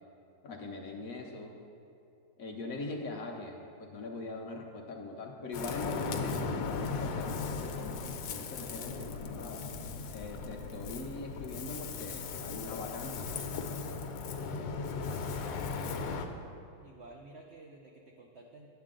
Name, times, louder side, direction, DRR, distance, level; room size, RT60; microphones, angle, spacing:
voice 1, 0.4-1.5 2.4-9.6 10.1-14.0, left 3 dB, 60° left, 1 dB, 1.1 m, -42 dB
Ocean, 5.5-16.3, left 4 dB, 90° left, 1.4 m, -37 dB
voice 2, 15.2-16.4 16.8-18.7, right 2 dB, 80° right, 1 dB, 0.5 m, -52 dB
10.5 x 7.7 x 3.7 m, 2.6 s
omnidirectional pair, 1.9 m